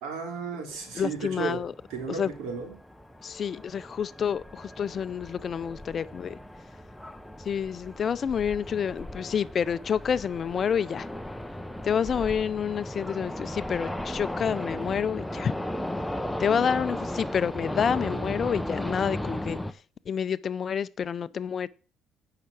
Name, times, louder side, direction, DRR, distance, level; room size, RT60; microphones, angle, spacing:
voice 1, 0.0-1.6 1.9-2.8, right 5 dB, 85° right, 3.0 m, -34 dB
sound 1, 0.7-19.7, left 1 dB, 5° left, 0.8 m, -36 dB
voice 2, 1.0-1.7 2.2-2.3 3.2-6.4 7.4-11.1 11.8-15.5 16.4-19.6 20.1-21.7, left 7 dB, 45° left, 0.5 m, -28 dB
9.9 x 5.8 x 6.8 m
cardioid pair, 90°, 0 cm